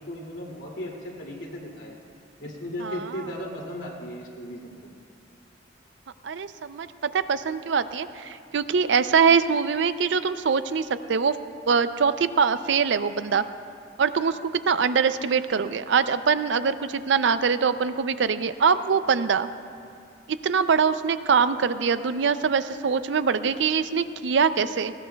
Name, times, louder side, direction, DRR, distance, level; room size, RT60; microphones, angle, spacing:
voice 1, 0.0-2.0 2.4-4.9, equal, 70° left, -2 dB, 2.5 m, -36 dB
voice 2, 6.2-11.4 11.7-13.4 14.0-19.5 20.3-24.9, right 6 dB, 65° right, 12 dB, 0.4 m, -23 dB
20.0 x 16.5 x 2.3 m, 2.4 s
head